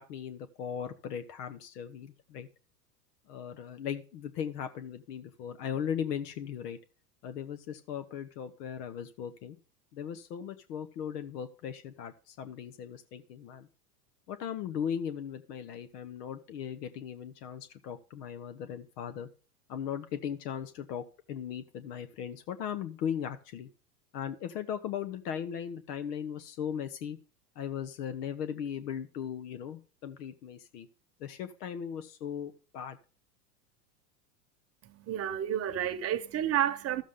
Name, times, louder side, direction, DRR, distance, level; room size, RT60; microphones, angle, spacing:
voice 1, 0.0-2.5 3.3-6.8 7.2-9.6 9.9-13.7 14.3-19.3 19.7-23.7 24.1-27.2 27.6-30.9 31.2-33.0, left 8 dB, 70° left, 1.1 m, -38 dB
voice 2, 34.8-37.0, right 10 dB, 30° right, 1.1 m, -30 dB
13.0 x 7.3 x 3.7 m
hypercardioid pair, 105°, 49 cm